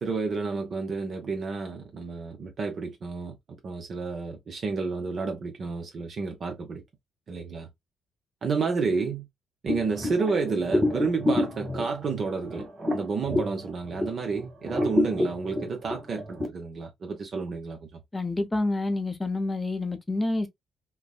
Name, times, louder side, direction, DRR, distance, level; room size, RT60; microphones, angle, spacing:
voice 1, 0.0-3.4 3.6-6.8 7.3-7.7 8.4-9.3 9.6-12.6 12.9-18.0, right 4 dB, 50° right, 0.6 m, -30 dB
sound 1, 9.7-14.3 14.6-16.5, left 1 dB, 25° right, 1.6 m, -28 dB
voice 2, 18.1-20.5, left 2 dB, 20° left, 0.6 m, -28 dB
3.3 x 2.0 x 2.3 m
cardioid pair, 90°, 0 cm